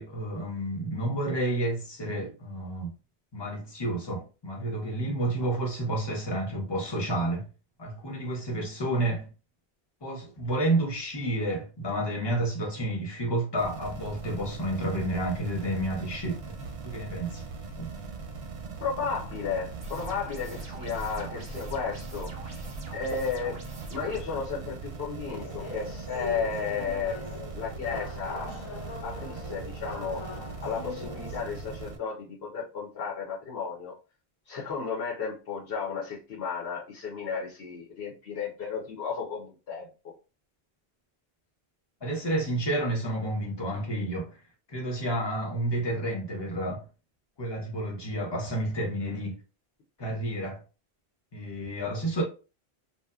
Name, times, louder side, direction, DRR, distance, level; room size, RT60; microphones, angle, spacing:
voice 1, 0.0-2.9 3.3-7.5 7.8-9.3 10.0-16.4 16.8-17.4 17.8-17.9 42.0-44.3 44.7-46.8 47.4-49.4 50.0-50.6 51.3-52.2, right 1 dB, 25° left, 0.7 m, -30 dB
sound 1, 13.6-32.0, right 4 dB, 90° right, 0.9 m, -40 dB
voice 2, 18.8-23.6 23.9-27.2 27.5-28.5 29.0-30.2 30.6-33.9 34.5-39.9, left 5 dB, 70° left, 1.0 m, -34 dB
sound 2, 19.8-24.2, right 2 dB, 40° right, 0.6 m, -43 dB
sound 3, 25.3-31.4, left 3 dB, 55° left, 0.3 m, -41 dB
2.7 x 2.1 x 2.3 m
omnidirectional pair, 1.1 m